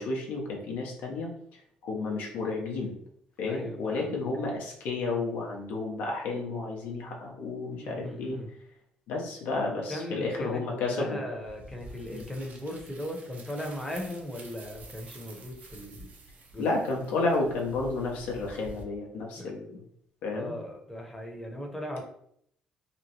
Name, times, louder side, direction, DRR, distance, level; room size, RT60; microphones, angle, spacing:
voice 1, 0.0-3.0 3.4-8.4 9.1-11.2 12.1-12.2 16.6-19.6 20.2-20.5, left 3 dB, 75° left, -1 dB, 0.7 m, -31 dB
voice 2, 3.5-4.2 7.8-8.5 9.9-16.1 16.5-16.8 19.4-19.5 20.3-22.0, left 1 dB, 10° left, 0 dB, 0.8 m, -38 dB
sound 1, 11.4-18.8, right 2 dB, 55° right, 0.6 m, -49 dB
2.9 x 2.1 x 2.9 m, 0.69 s
supercardioid pair, 60°, 3 cm